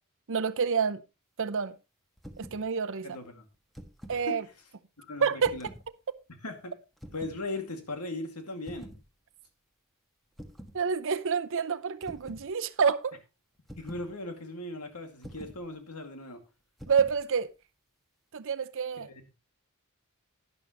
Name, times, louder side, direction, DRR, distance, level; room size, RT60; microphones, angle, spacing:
voice 1, 0.3-1.0 1.4-1.8 2.4-3.2 4.1-4.4 5.2-5.5 10.7-13.1 16.9-17.5 18.3-19.1, right 6 dB, 60° right, 0.7 m, -28 dB
sound 1, 2.2-2.6 3.5-4.2 5.4-5.9 7.0-7.4 8.7-9.0 10.4-10.8 12.0-12.5 13.7-14.1 15.2-15.6 16.8-17.2, equal, ahead, 1.3 m, -46 dB
voice 2, 3.0-3.4 4.1-4.5 5.0-5.7 6.4-6.7 7.1-8.9 13.8-16.4 19.0-19.2, left 2 dB, 90° left, 2.2 m, -38 dB
11.5 x 10.5 x 3.0 m
head